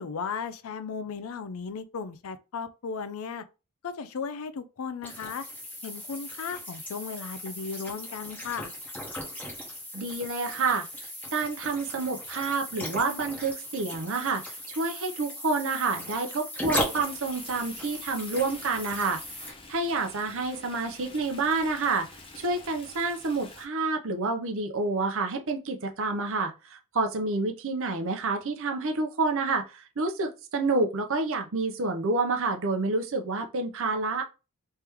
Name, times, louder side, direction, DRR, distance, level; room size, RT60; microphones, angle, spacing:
voice 1, 0.0-3.4 3.8-5.4 5.8-8.7, left 5 dB, 70° left, 0.4 m, -36 dB
sound 1, 5.0-19.5, equal, 5° left, 1.1 m, -37 dB
voice 2, 9.9-10.9 11.3-19.2 19.7-22.1 22.4-34.2, right 3 dB, 65° right, 0.7 m, -28 dB
Stream, 16.8-23.7, left 3 dB, 25° left, 0.7 m, -48 dB
3.3 x 3.0 x 3.4 m
head